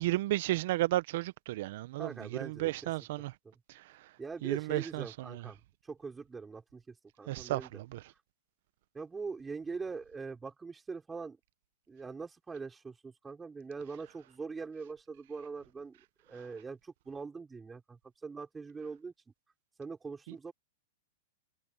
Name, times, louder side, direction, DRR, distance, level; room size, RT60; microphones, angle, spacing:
voice 1, 0.0-2.1 2.4-3.3 3.7-3.8 4.4-5.4 7.3-8.0 20.3-20.4, right 17 dB, 60° right, 1.1 m, -33 dB
voice 2, 2.0-2.9 3.4-3.5 4.2-7.8 8.9-11.4 11.9-16.0 16.3-19.1 19.8-20.5, right 4 dB, 15° right, 5.5 m, -42 dB
hypercardioid pair, 130°, 0 cm